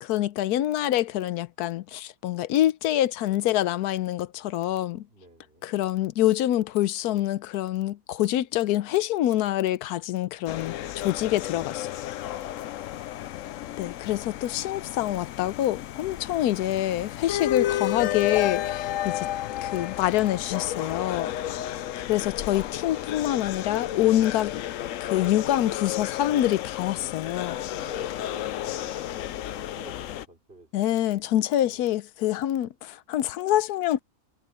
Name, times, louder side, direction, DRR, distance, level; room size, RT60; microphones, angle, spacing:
voice 1, 0.0-5.0 5.6-12.0 13.8-19.3 19.6-24.6 25.0-27.6 30.7-34.0, left 13 dB, 90° left, 1.2 m, -26 dB
voice 2, 5.1-5.7 11.1-11.6 12.3-12.6 16.2-16.4 21.4-21.9 27.7-30.9 31.6-31.8, right 2 dB, 40° right, 4.5 m, -51 dB
sound 1, 10.5-30.3, left 12 dB, 65° left, 0.9 m, -32 dB
omnidirectional pair, 1.6 m